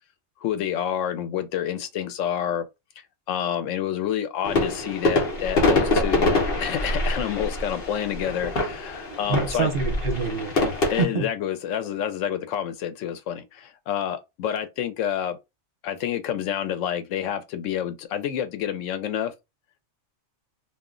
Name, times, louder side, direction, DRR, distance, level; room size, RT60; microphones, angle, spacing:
voice 1, 0.4-2.6 3.3-9.7 10.9-15.4 15.8-19.3, left 9 dB, 85° left, 0.9 m, -28 dB
sound 1, 4.4-11.0, left 2 dB, 55° left, 0.9 m, -25 dB
voice 2, 9.3-11.3, right 4 dB, 55° right, 0.9 m, -26 dB
2.3 x 2.1 x 3.6 m
omnidirectional pair, 1.3 m